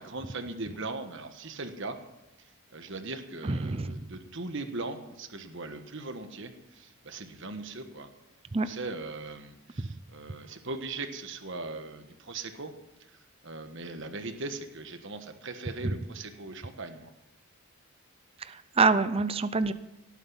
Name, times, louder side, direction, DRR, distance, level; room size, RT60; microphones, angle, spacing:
voice 1, 0.0-2.0 2.7-8.1 8.6-12.7 13.4-17.1, right 3 dB, 55° right, 7 dB, 1.4 m, -39 dB
voice 2, 3.4-4.0 8.5-8.7 9.8-9.9 18.5-19.7, right 4 dB, 25° right, 12 dB, 0.5 m, -26 dB
17.5 x 9.1 x 5.6 m, 0.98 s
head